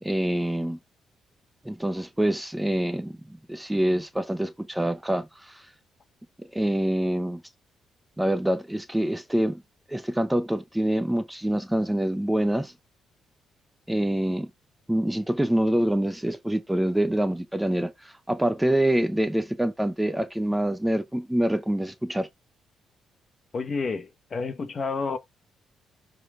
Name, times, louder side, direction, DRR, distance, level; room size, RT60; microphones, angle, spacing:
voice 1, 0.0-0.8 1.6-5.7 6.4-7.4 8.2-9.6 9.9-12.7 13.9-14.5 14.9-22.3, right 1 dB, 5° right, 0.7 m, -26 dB
voice 2, 23.5-25.2, left 4 dB, 40° left, 1.4 m, -30 dB
10.5 x 3.9 x 3.6 m
cardioid pair, 90°, 0 cm